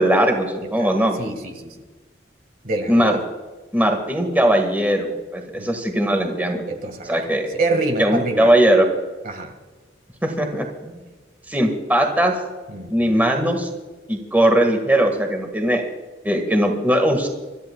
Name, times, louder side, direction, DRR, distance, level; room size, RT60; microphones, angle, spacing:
voice 1, 0.0-1.2 2.9-3.2 3.7-6.6 7.0-7.5 8.0-8.9 10.2-11.0 11.5-12.3 12.9-13.7 14.1-15.8 16.2-17.3, right 1 dB, 10° right, 3 dB, 1.7 m, -19 dB
voice 2, 1.2-1.7 2.6-3.2 5.5-5.7 6.7-7.2 7.5-8.5 9.2-9.5 12.7-13.5, right 2 dB, 50° right, 5 dB, 1.8 m, -26 dB
26.5 x 13.5 x 2.3 m, 1.3 s
head